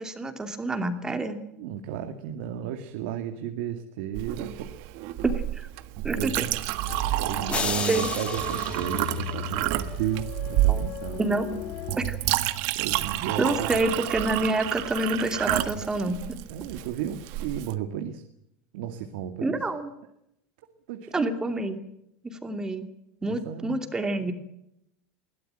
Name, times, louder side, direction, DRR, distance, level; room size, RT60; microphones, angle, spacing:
voice 1, 0.0-1.4 5.2-5.7 6.0-6.4 7.9-8.1 10.7-10.8 11.2-11.5 12.0-12.2 13.4-16.2 19.4-19.9 21.1-21.8 22.2-22.9 23.2-24.3, right 2 dB, 10° right, 7 dB, 2.6 m, -27 dB
voice 2, 1.6-4.7 6.1-6.5 7.1-11.3 12.7-13.7 16.5-18.2 18.7-19.6 20.9-21.3 23.2-23.8, right 10 dB, 75° right, 6 dB, 2.2 m, -33 dB
Chink clink, 4.1-17.7, right 16 dB, 60° right, 1.5 m, -30 dB
sound 1, 6.9-12.0, left 10 dB, 45° left, 3.0 m, -38 dB
sound 2, 7.5-9.8, left 6 dB, 20° left, 1.7 m, -33 dB
22.0 x 17.0 x 9.0 m, 0.80 s
supercardioid pair, 150°, 5 cm